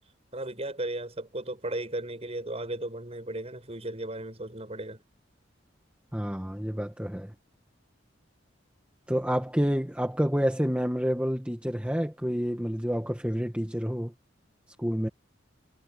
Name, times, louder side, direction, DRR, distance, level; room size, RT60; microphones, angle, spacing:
voice 1, 0.3-5.0, right 1 dB, 35° right, 7.3 m, -35 dB
voice 2, 6.1-7.3 9.1-14.1 14.8-15.1, equal, 5° right, 1.8 m, -28 dB
head